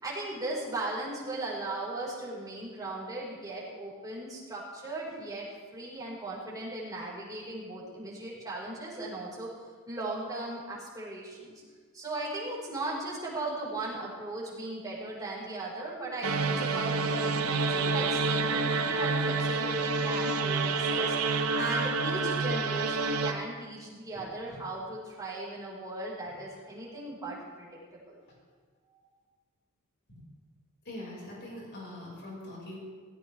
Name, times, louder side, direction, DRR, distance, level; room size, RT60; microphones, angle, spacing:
voice 1, 0.0-5.4 5.7-9.5 9.9-11.6 11.9-27.7 28.1-28.2, right 2 dB, 15° right, -6 dB, 5.1 m, -37 dB
sound 1, 16.2-23.3, right 4 dB, 90° right, 0.9 m, -28 dB
voice 2, 30.9-32.8, left 1 dB, 55° left, -4 dB, 5.9 m, -42 dB
18.5 x 16.0 x 3.6 m, 1.5 s
head